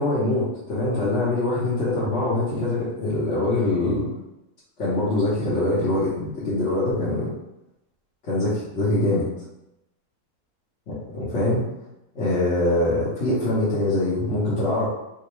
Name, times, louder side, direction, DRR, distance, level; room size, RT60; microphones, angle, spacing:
voice 1, 0.0-4.1 4.8-7.3 8.3-9.3 11.1-11.7 12.1-14.9, left 2 dB, 55° left, -10 dB, 1.0 m, -23 dB
3.6 x 2.1 x 3.0 m, 0.88 s
omnidirectional pair, 1.6 m